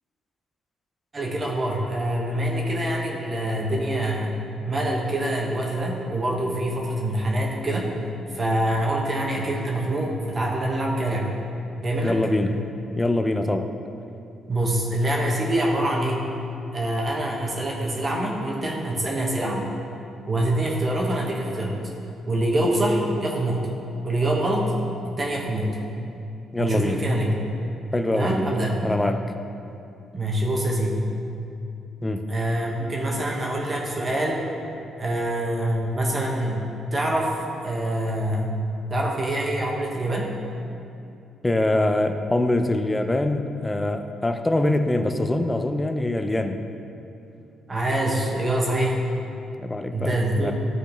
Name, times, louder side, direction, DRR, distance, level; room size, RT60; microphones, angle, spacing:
voice 1, 1.1-4.4 4.7-7.9 8.3-11.3 11.8-12.3 14.5-16.3 16.7-19.7 20.3-21.8 22.3-23.7 24.0-24.7 25.1-25.8 26.6-27.4 28.1-28.7 30.1-31.1 32.3-34.5 35.0-37.3 37.6-38.6 38.9-40.3 47.7-49.0 49.9-50.5, right 1 dB, 30° right, -1 dB, 1.0 m, -25 dB
voice 2, 12.0-12.5 13.0-13.7 26.5-27.0 27.9-28.6 28.8-29.2 32.0-32.2 41.4-46.6 49.6-50.5, left 1 dB, 15° left, 7 dB, 0.5 m, -24 dB
12.0 x 4.1 x 3.4 m, 2.6 s
cardioid pair, 90°, 0 cm